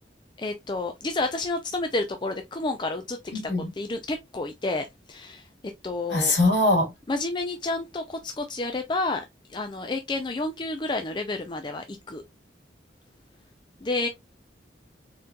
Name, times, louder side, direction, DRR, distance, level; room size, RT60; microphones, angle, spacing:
voice 1, 0.4-3.2 3.4-5.4 5.8-6.4 7.1-9.2 9.5-12.2 13.8-14.1, left 2 dB, 25° left, 0.4 m, -30 dB
voice 2, 3.3-3.7 6.1-6.9, left 2 dB, 70° left, 2.1 m, -22 dB
4.2 x 3.7 x 2.3 m
head